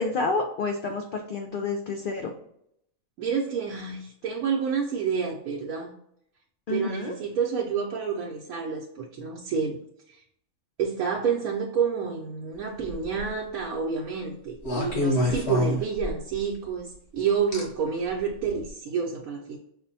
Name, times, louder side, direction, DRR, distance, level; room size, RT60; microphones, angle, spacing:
voice 1, 0.0-2.3 6.7-7.2, left 3 dB, 85° left, 3 dB, 0.4 m, -29 dB
voice 2, 3.2-5.9 6.7-9.8 10.1-10.2 10.8-19.6, right 6 dB, 80° right, -2 dB, 1.0 m, -29 dB
sound 1, 12.8-13.3 14.6-16.4 17.5-17.6 18.5-18.6, left 1 dB, 55° left, 1.2 m, -27 dB
5.2 x 2.1 x 2.7 m, 0.71 s
omnidirectional pair, 1.5 m